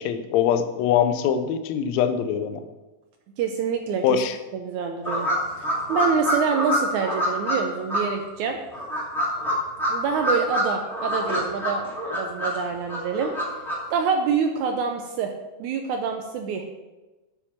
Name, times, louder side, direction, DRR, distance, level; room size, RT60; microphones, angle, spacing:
voice 1, 0.0-2.6 4.0-4.4, left 8 dB, 80° left, 9 dB, 1.6 m, -23 dB
voice 2, 3.4-4.2 4.5-5.3 5.6-8.6 9.9-11.9 12.1-13.3 13.9-15.3 15.6-16.6, right 6 dB, 75° right, 4 dB, 1.9 m, -26 dB
sound 1, 5.1-7.6 7.9-8.0 8.7-10.6 10.9-12.6 12.9-13.7, equal, ahead, 1.9 m, -25 dB
8.0 x 6.9 x 5.9 m, 1.1 s
omnidirectional pair, 3.9 m